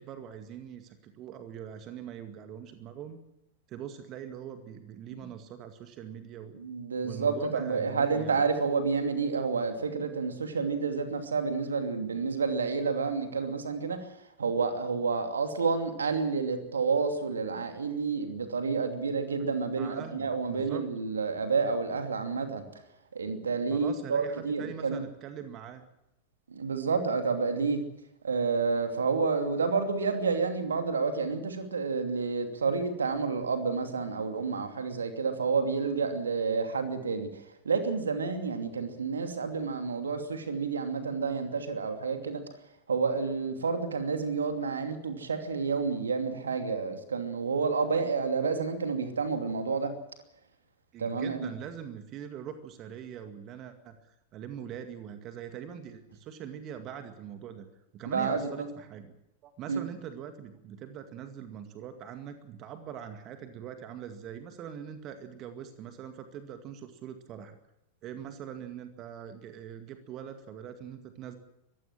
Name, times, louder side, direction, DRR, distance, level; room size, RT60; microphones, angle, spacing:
voice 1, 0.0-3.2 3.7-6.6 7.0-8.4 19.7-20.8 23.7-25.8 50.9-57.7 57.9-59.1 59.4-67.6 68.0-71.4, right 9 dB, 35° right, 8 dB, 2.1 m, -42 dB
voice 2, 6.5-14.1 14.4-22.6 23.1-25.0 26.5-27.8 28.2-42.4 42.9-49.9 51.0-51.5 58.1-58.7 59.7-59.8, right 4 dB, 70° right, 7 dB, 2.7 m, -29 dB
24.0 x 15.5 x 7.6 m, 0.86 s
figure-of-eight pair, 90°, 0 cm